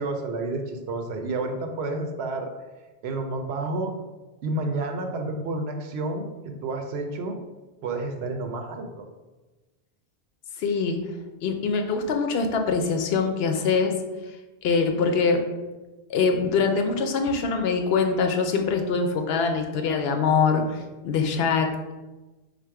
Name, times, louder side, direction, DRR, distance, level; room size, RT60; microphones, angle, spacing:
voice 1, 0.0-2.5 3.0-3.9 4.4-7.4 7.8-9.1, right 2 dB, 80° right, 4 dB, 0.9 m, -30 dB
voice 2, 10.6-11.1 11.4-13.9 14.6-15.4 16.1-21.9, left 5 dB, 75° left, 4 dB, 0.8 m, -23 dB
3.7 x 2.5 x 4.6 m, 1.2 s
omnidirectional pair, 1.1 m